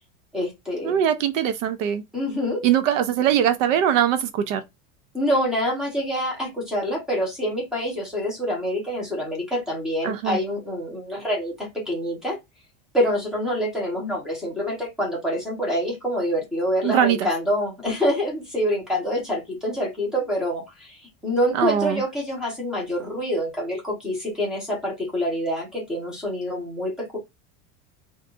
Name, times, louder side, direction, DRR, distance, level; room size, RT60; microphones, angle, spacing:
voice 1, 0.3-1.0 2.1-2.6 5.1-12.4 12.9-27.2, equal, ahead, 1.0 m, -26 dB
voice 2, 0.8-2.0 2.6-4.6 10.0-10.4 16.8-17.3 21.5-22.0, right 10 dB, 65° right, 0.6 m, -21 dB
3.4 x 2.6 x 2.5 m
supercardioid pair, 175°, 41 cm